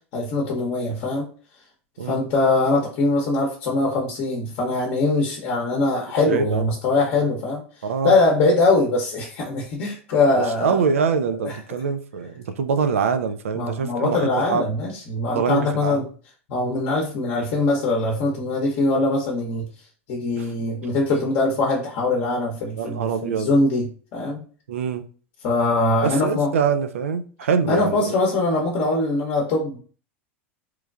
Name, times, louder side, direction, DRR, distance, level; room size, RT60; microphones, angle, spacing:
voice 1, 0.1-1.3 2.0-7.6 8.0-10.8 11.4-11.6 13.5-16.0 16.5-19.7 20.1-24.4 25.4-26.5 27.7-29.8, left 2 dB, 50° left, 0.8 m, -22 dB
voice 2, 6.3-6.7 7.8-8.2 10.5-14.7 15.3-16.1 20.4-20.5 22.8-23.6 24.7-25.0 26.0-28.1, right 6 dB, 85° right, 0.3 m, -24 dB
3.0 x 2.2 x 2.4 m
hypercardioid pair, 100°, 7 cm